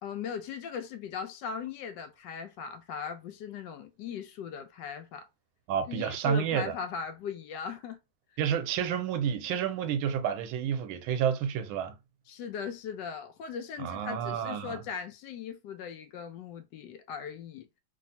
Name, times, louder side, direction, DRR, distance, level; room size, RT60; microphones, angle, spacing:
voice 1, 0.0-5.3 5.9-8.0 12.3-17.7, left 7 dB, 75° left, 1.1 m, -39 dB
voice 2, 5.7-6.7 8.4-12.0 13.8-14.8, right 8 dB, 85° right, 1.4 m, -30 dB
3.3 x 2.3 x 2.6 m
omnidirectional pair, 2.2 m